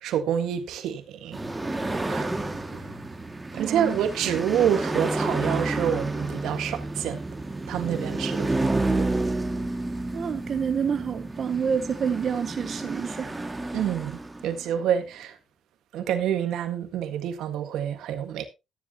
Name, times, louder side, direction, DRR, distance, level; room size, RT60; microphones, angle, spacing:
voice 1, 0.0-1.4 1.7-2.3 2.7-3.0 3.5-7.2 7.7-9.1 13.7-15.4 15.9-18.4, right 9 dB, 85° right, 1.7 m, -28 dB
sound 1, 1.3-14.8, right 2 dB, 15° right, 2.1 m, -30 dB
voice 2, 3.5-4.0 10.1-13.3, right 7 dB, 50° right, 0.9 m, -28 dB
13.5 x 10.5 x 2.9 m
cardioid pair, 90°, 0 cm